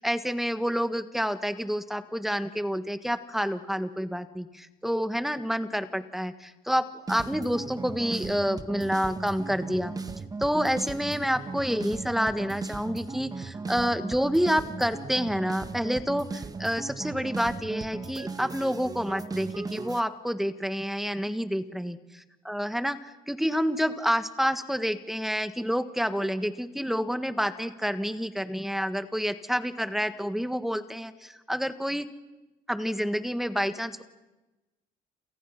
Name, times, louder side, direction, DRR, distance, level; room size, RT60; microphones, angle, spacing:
voice 1, 0.0-9.9 10.4-22.0 22.4-32.1 32.7-34.0, equal, ahead, 10 dB, 1.6 m, -28 dB
sound 1, 7.1-20.0, right 4 dB, 20° right, 1.1 m, -37 dB
29.5 x 28.5 x 5.9 m, 1.1 s
cardioid pair, 110°, 17 cm